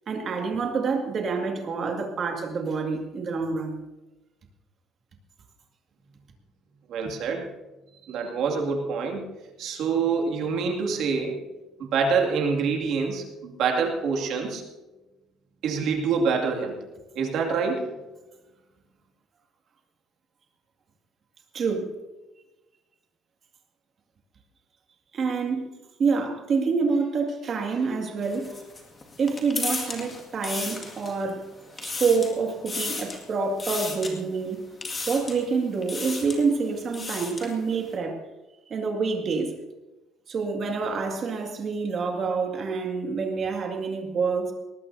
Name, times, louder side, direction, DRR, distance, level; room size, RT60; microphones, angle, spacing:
voice 1, 0.1-3.8 21.5-21.9 25.1-25.7 26.0-28.6 29.2-31.5 31.8-34.6 35.1-38.3 38.7-39.5 40.3-44.5, right 4 dB, 35° right, 3 dB, 2.1 m, -27 dB
voice 2, 6.9-7.5 8.1-9.3 9.6-11.4 11.8-14.6 15.6-16.8 17.2-17.9, right 5 dB, 60° right, 1 dB, 2.3 m, -26 dB
sound 1, 28.2-31.3 31.6-32.4 32.7-33.2 33.6-34.1 34.8-35.4 35.8-36.4 36.8-37.5, left 3 dB, 20° left, 2.0 m, -34 dB
21.5 x 19.0 x 2.7 m, 1.1 s
cardioid pair, 165°, 0 cm